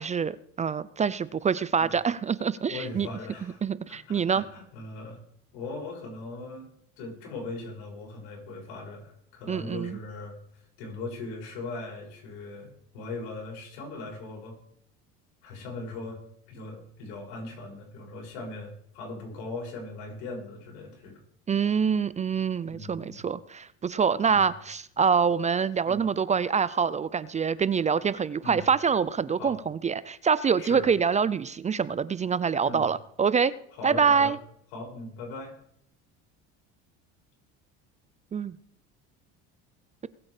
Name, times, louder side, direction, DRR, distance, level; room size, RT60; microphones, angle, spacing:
voice 1, 0.0-3.1 3.6-4.4 9.5-10.0 21.5-33.5 33.8-34.4 38.3-38.5, right 6 dB, 20° right, 18 dB, 0.5 m, -25 dB
voice 2, 2.7-3.6 3.9-5.2 5.5-6.7 7.0-10.4 10.8-14.6 15.4-16.2 16.5-21.2 22.7-23.2 24.3-24.5 25.8-26.0 28.4-28.6 29.4-29.6 30.6-30.9 32.6-32.9 33.7-34.3 34.7-35.5, left 3 dB, 80° left, 0 dB, 7.0 m, -39 dB
20.5 x 8.7 x 5.0 m, 0.68 s
supercardioid pair, 110°, 31 cm